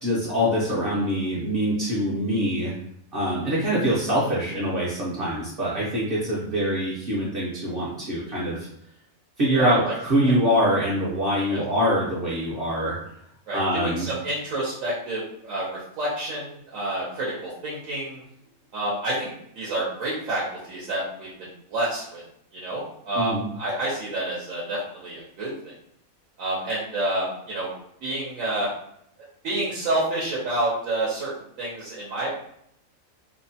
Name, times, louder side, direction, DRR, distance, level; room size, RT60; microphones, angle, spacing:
voice 1, 0.0-2.7 3.1-8.7 9.4-13.0 13.5-14.1 23.2-23.4, equal, 50° right, -7 dB, 0.8 m, -24 dB
voice 2, 9.5-9.9 11.5-11.6 13.5-18.2 18.7-22.2 22.5-25.5 26.4-27.7 28.0-28.7 29.4-31.3 31.6-32.3, right 1 dB, 75° right, -6 dB, 1.1 m, -29 dB
2.8 x 2.1 x 2.7 m, 0.72 s
omnidirectional pair, 1.4 m